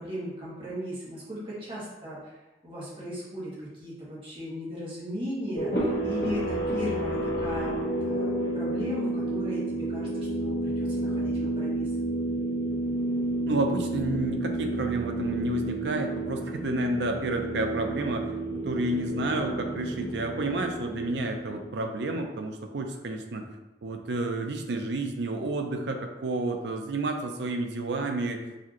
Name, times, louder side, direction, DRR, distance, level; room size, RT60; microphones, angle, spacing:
voice 1, 0.0-11.8, equal, 30° right, -7 dB, 1.2 m, -37 dB
sound 1, 5.6-21.9, right 1 dB, 70° left, 1.0 m, -30 dB
voice 2, 13.5-18.3 18.6-23.4 23.8-28.4, right 2 dB, 70° right, 4 dB, 0.5 m, -30 dB
4.2 x 2.6 x 3.0 m, 1.0 s
head